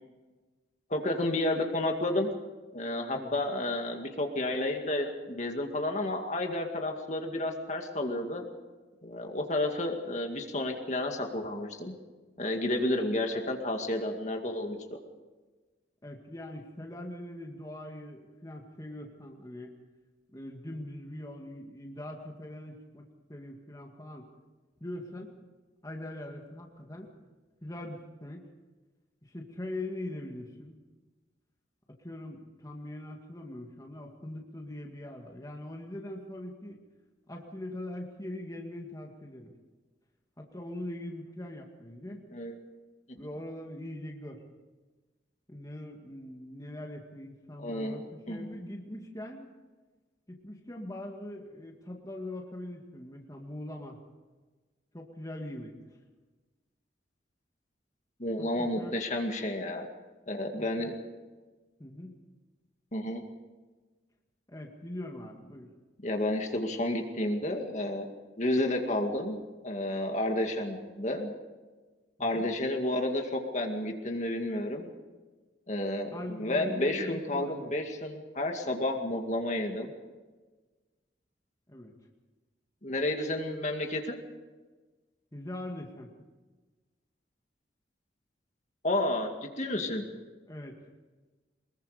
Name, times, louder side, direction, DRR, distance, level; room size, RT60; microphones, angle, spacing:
voice 1, 0.9-2.3 2.7-8.4 9.0-11.9 12.4-14.8 42.3-42.6 47.6-48.0 48.3-48.5 58.2-59.9 60.3-60.9 62.9-63.2 66.0-68.0 68.4-69.4 69.6-71.3 72.2-74.9 75.7-79.9 82.8-84.2 88.8-89.3 89.6-90.0, left 1 dB, 40° left, 3 dB, 2.2 m, -31 dB
voice 2, 16.0-19.7 20.3-24.3 24.8-25.3 25.8-27.1 27.6-28.5 29.2-30.8 32.0-36.8 37.3-39.5 40.4-42.2 43.2-44.4 45.5-49.5 50.3-54.0 54.9-55.7 58.4-58.9 60.5-60.9 61.8-62.1 64.5-65.7 72.2-72.5 76.1-77.7 81.7-81.9 85.3-86.1 90.0-90.1 90.5-90.8, left 1 dB, 20° left, 1 dB, 2.1 m, -42 dB
24.0 x 21.5 x 5.1 m, 1.3 s
head